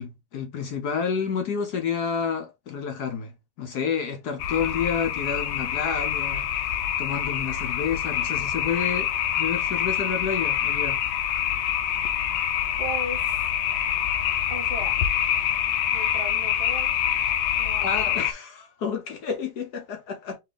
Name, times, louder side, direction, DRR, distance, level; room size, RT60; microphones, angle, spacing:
voice 1, 0.0-3.3 3.6-9.1 9.4-11.0 17.8-20.4, left 6 dB, 65° left, 1.1 m, -30 dB
sound 1, 4.4-18.3, left 10 dB, 80° left, 1.5 m, -26 dB
voice 2, 12.8-13.3 14.5-15.1 15.9-17.0 17.5-18.2, right 1 dB, 30° right, 0.5 m, -37 dB
4.6 x 3.3 x 3.3 m
omnidirectional pair, 2.2 m